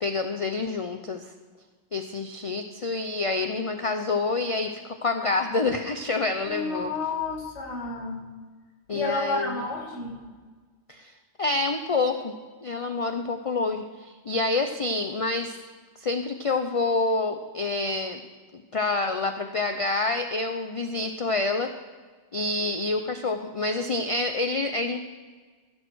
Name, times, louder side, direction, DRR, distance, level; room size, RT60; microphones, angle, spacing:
voice 1, 0.0-1.3 1.9-6.9 8.9-9.6 10.9-11.1 11.4-12.3 12.6-15.6 16.0-18.2 18.5-21.7 22.3-25.0, left 3 dB, 40° left, 6 dB, 0.5 m, -27 dB
voice 2, 6.5-8.2 8.9-10.2, left 3 dB, 55° left, -1 dB, 2.3 m, -30 dB
15.5 x 7.3 x 6.3 m, 1.4 s
omnidirectional pair, 1.3 m